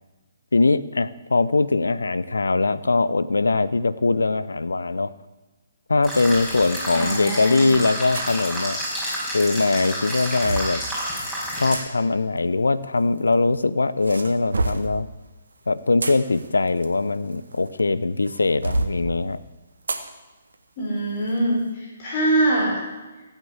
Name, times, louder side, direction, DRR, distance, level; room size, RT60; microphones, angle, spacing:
voice 1, 0.5-5.1 5.9-8.8 9.3-10.8 11.6-15.1 15.7-19.4, left 3 dB, 70° left, 15 dB, 0.7 m, -21 dB
sound 1, 6.0-11.8, equal, 5° left, 5.6 m, -30 dB
voice 2, 6.9-7.8 20.8-22.8, right 1 dB, 30° left, -5 dB, 5.4 m, -23 dB
sound 2, 8.1-8.4 9.5-10.8 11.7-11.8 13.0-13.6 14.0-14.9 15.7-17.8 18.3-19.0 19.9-20.1 20.5-20.6 21.2-21.4, right 2 dB, 65° right, 1.5 m, -28 dB
16.0 x 8.2 x 8.1 m, 1.2 s
figure-of-eight pair, 135°, 0 cm